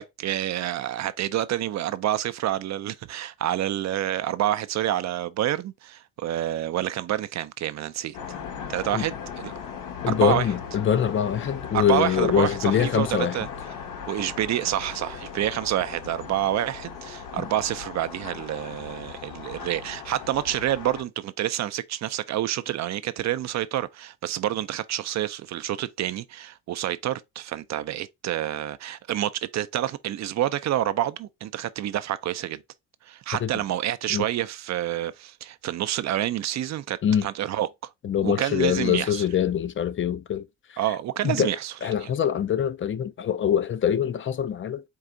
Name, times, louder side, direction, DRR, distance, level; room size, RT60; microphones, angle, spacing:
voice 1, 0.0-8.2 8.7-9.5 10.1-10.5 11.7-13.5 14.1-32.6 33.0-37.9 38.2-39.2 40.8-41.7 42.0-42.1, right 12 dB, 55° right, 0.5 m, -28 dB
sound 1, 8.1-21.0, left 7 dB, 80° left, 1.0 m, -38 dB
voice 2, 10.0-13.4 17.4-17.5 33.4-33.5 34.1-34.2 37.0-37.3 38.0-40.5 41.2-41.5 41.8-44.8, left 9 dB, 40° left, 0.5 m, -24 dB
4.6 x 2.4 x 3.7 m
supercardioid pair, 70°, 33 cm